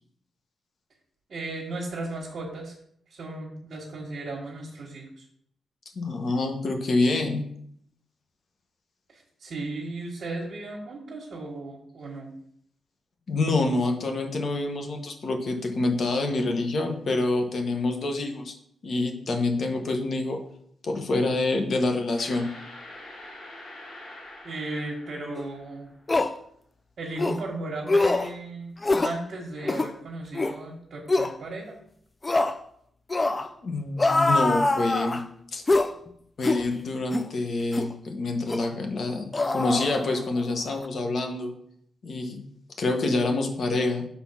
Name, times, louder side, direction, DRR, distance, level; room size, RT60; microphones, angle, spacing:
voice 1, 1.3-2.7 3.1-5.2 9.1-12.3 24.4-25.9 27.0-28.7 29.0-31.8, right 2 dB, 55° right, -4 dB, 1.5 m, -35 dB
voice 2, 5.9-7.4 13.3-18.5 18.8-20.4 20.8-22.4 33.6-35.2 35.5-35.6 36.4-41.5 42.0-42.4 42.8-44.0, left 2 dB, 50° left, 3 dB, 1.2 m, -27 dB
sound 1, 22.2-26.0, left 1 dB, 65° left, 2.5 m, -45 dB
sound 2, 25.4-25.5 26.1-26.3 27.2-27.4 27.9-28.3 28.8-29.2 29.6-29.9 30.3-30.6 31.1-31.3 32.2-32.6 33.1-33.5 34.0-35.2 35.7-35.9 36.4-36.6 37.1-37.3 37.7-37.9 38.5-38.7 39.3-40.4 40.7-40.9, left 2 dB, 20° left, 0.4 m, -24 dB
6.1 x 3.9 x 5.7 m, 0.68 s
cardioid pair, 110°, 0 cm